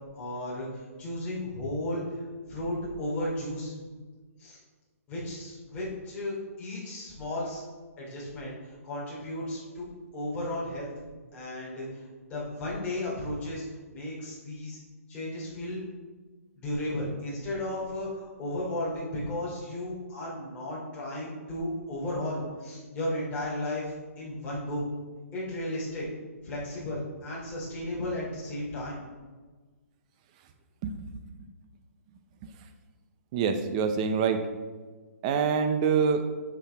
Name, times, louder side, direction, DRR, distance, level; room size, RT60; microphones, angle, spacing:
voice 1, 0.1-2.0 2.5-3.7 4.4-4.6 5.1-7.6 8.0-9.9 10.1-10.9 11.3-13.6 13.9-14.8 15.1-15.8 16.5-24.9 25.3-26.1 26.4-29.0, left 1 dB, 15° left, -7 dB, 2.8 m, -34 dB
voice 2, 30.8-31.3 32.4-32.7 33.3-34.5 35.2-36.3, right 6 dB, 25° right, 8 dB, 0.6 m, -26 dB
10.0 x 6.1 x 3.5 m, 1.4 s
hypercardioid pair, 165°, 8 cm